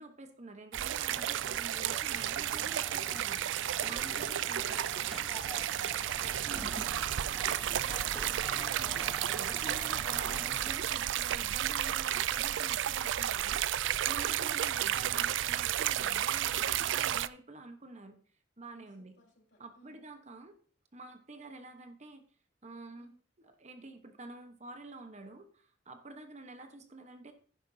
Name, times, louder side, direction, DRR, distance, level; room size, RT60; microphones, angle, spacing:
voice 1, 0.0-3.4 3.8-4.8 6.4-6.7 8.5-18.2 18.6-19.2 19.6-20.6 20.9-22.2 22.6-23.1 23.4-27.3, right 2 dB, 35° right, 7 dB, 1.1 m, -49 dB
sound 1, 0.7-17.3, right 11 dB, 75° right, 0.4 m, -32 dB
sound 2, 1.1-10.7, equal, ahead, 1.0 m, -48 dB
sound 3, 2.0-11.0, right 3 dB, 55° right, 3.2 m, -54 dB
voice 2, 4.0-8.2 14.2-14.5 18.7-20.0 23.0-23.2, left 1 dB, 65° left, -1 dB, 3.9 m, -61 dB
11.0 x 10.5 x 2.7 m, 0.44 s
head